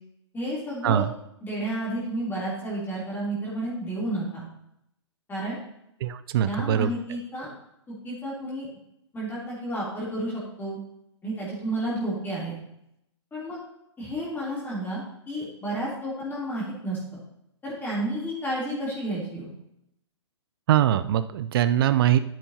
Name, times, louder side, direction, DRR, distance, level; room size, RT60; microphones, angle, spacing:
voice 1, 0.3-1.1 1.4-4.4 5.3-5.6 6.4-7.5 7.9-8.7 9.1-10.8 11.2-12.5 13.3-13.6 14.0-17.0 17.6-19.5, right 1 dB, 15° left, -7 dB, 3.2 m, -31 dB
voice 2, 6.0-6.9 20.7-22.2, right 11 dB, 50° right, 12 dB, 0.5 m, -22 dB
10.0 x 9.0 x 2.9 m, 0.80 s
hypercardioid pair, 125°, 15 cm